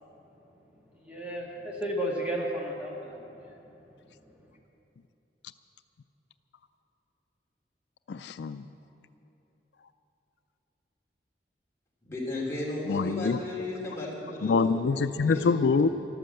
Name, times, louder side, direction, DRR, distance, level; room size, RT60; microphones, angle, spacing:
voice 1, 1.0-3.5, right 1 dB, 10° right, -3 dB, 1.7 m, -33 dB
voice 2, 8.1-8.6 12.9-13.4 14.4-15.9, left 4 dB, 75° left, 11 dB, 0.4 m, -25 dB
voice 3, 12.0-15.6, left 2 dB, 15° left, -5 dB, 3.3 m, -35 dB
14.0 x 12.5 x 7.8 m, 2.9 s
head